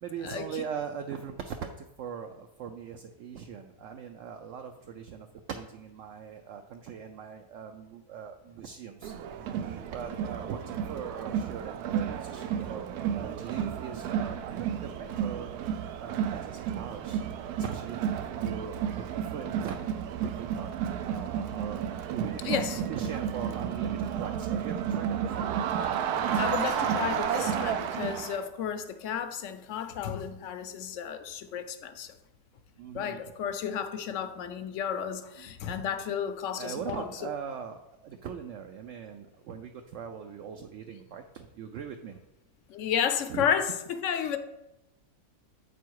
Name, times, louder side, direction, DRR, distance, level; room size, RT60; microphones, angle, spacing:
voice 1, 0.0-9.1 9.4-15.6 16.0-17.2 17.6-19.8 20.2-20.7 21.0-25.4 32.8-33.2 35.4-35.5 36.5-42.2 43.3-43.4, right 7 dB, 65° right, 0.8 m, -40 dB
Crowd, 9.0-28.4, right 8 dB, 85° right, 1.1 m, -32 dB
voice 2, 22.4-22.8 26.3-32.1 32.9-37.1 42.7-44.4, left 8 dB, 65° left, 0.9 m, -32 dB
8.2 x 4.7 x 4.6 m
omnidirectional pair, 1.6 m